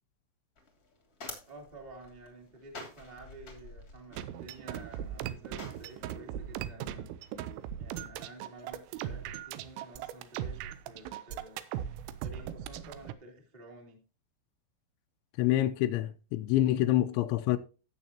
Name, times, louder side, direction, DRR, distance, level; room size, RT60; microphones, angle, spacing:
sound 1, 0.5-6.2, left 2 dB, 45° left, 1.2 m, -49 dB
voice 1, 1.4-7.1 7.8-11.6 12.0-14.0, right 2 dB, 15° right, 1.4 m, -51 dB
sound 2, 4.1-13.1, right 10 dB, 85° right, 3.3 m, -39 dB
voice 2, 15.4-17.6, left 14 dB, 85° left, 2.6 m, -27 dB
16.0 x 7.0 x 2.9 m
omnidirectional pair, 5.9 m